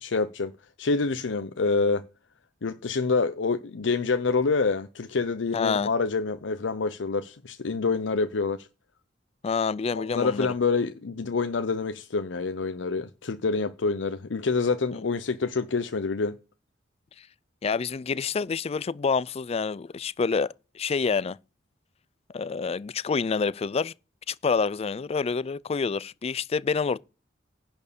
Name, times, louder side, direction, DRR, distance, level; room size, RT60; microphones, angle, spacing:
voice 1, 0.0-0.5 0.8-2.0 2.6-8.7 9.9-16.4, left 4 dB, 90° left, 0.6 m, -27 dB
voice 2, 5.5-5.9 9.4-10.5 14.9-15.0 17.6-21.4 22.3-23.9 24.3-27.0, left 5 dB, 35° left, 0.4 m, -27 dB
10.5 x 4.5 x 6.8 m
head